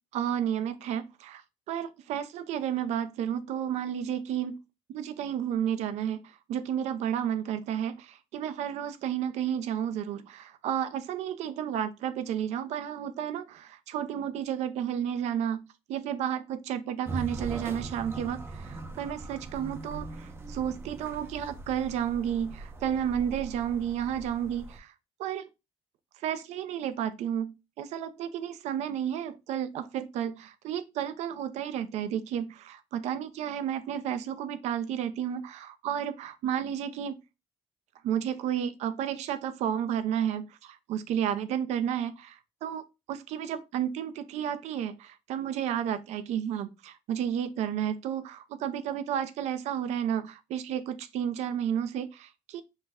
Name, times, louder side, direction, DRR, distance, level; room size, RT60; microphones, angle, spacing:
voice 1, 0.1-1.4 1.7-4.6 4.9-24.9 25.2-25.5 26.2-37.2 38.0-42.8 43.1-52.6, right 9 dB, 75° right, 0.6 m, -32 dB
sound 1, 17.1-24.8, right 3 dB, 20° right, 0.5 m, -41 dB
5.6 x 2.2 x 3.4 m
cardioid pair, 135°, 12 cm